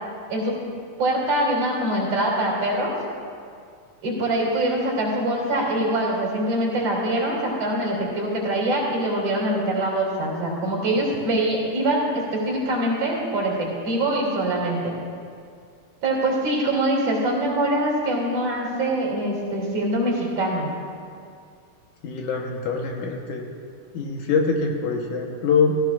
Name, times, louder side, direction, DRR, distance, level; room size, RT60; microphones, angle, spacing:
voice 1, 1.0-2.9 4.0-14.9 16.0-20.7, right 1 dB, 50° right, -2 dB, 3.6 m, -24 dB
voice 2, 22.0-23.5 23.9-25.8, left 4 dB, 70° left, 1 dB, 2.3 m, -24 dB
17.5 x 15.5 x 2.4 m, 2.3 s
omnidirectional pair, 3.8 m